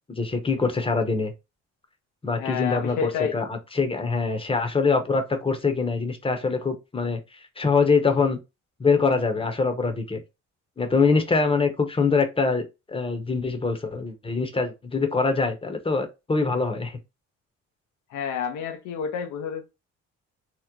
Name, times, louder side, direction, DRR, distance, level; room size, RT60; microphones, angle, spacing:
voice 1, 0.1-1.3 2.2-8.4 8.8-10.2 10.8-17.0, left 4 dB, 20° left, 0.8 m, -24 dB
voice 2, 2.4-3.4 18.1-19.6, left 7 dB, 85° left, 0.7 m, -29 dB
3.0 x 2.0 x 3.6 m
cardioid pair, 90°, 30 cm